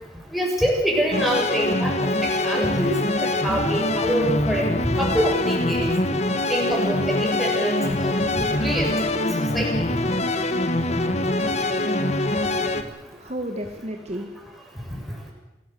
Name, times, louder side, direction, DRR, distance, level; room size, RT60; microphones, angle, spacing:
voice 1, 0.3-2.9 3.2-4.7 5.0-5.9 6.5-9.3 9.5-9.9, equal, ahead, -1 dB, 6.9 m, -25 dB
sound 1, 1.1-12.8, left 1 dB, 40° left, 1.7 m, -24 dB
voice 2, 12.9-15.3, right 1 dB, 40° right, 4 dB, 1.9 m, -35 dB
27.5 x 17.0 x 7.9 m, 0.99 s
head